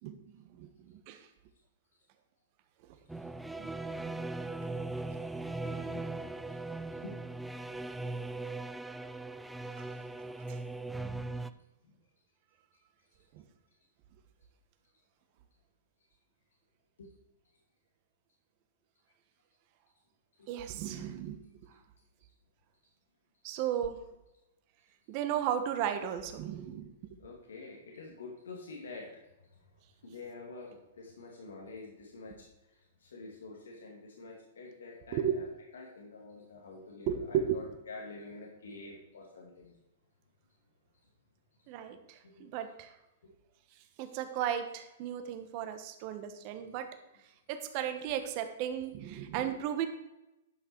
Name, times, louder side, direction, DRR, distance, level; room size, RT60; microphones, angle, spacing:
voice 1, 0.0-1.3 3.6-3.7 8.2-8.3 9.8-9.9 10.5-10.6 13.3-13.4 20.5-21.4 23.4-24.0 25.1-26.9 35.1-35.4 37.1-37.6 41.7-42.9 44.0-46.9 47.5-49.9, right 9 dB, 40° right, 7 dB, 1.3 m, -35 dB
sound 1, 3.1-11.5, right 2 dB, 5° right, 0.4 m, -39 dB
voice 2, 5.6-6.1 7.0-7.2 9.5-10.1 11.4-11.5 11.8-11.9 17.0-17.1 20.4-20.5 27.2-29.2 30.0-32.4 33.0-35.5 35.7-39.8 42.2-42.5 43.2-43.3 46.6-46.7, left 3 dB, 90° left, -1 dB, 2.4 m, -48 dB
11.0 x 6.0 x 4.6 m, 0.94 s
hypercardioid pair, 140°, 0 cm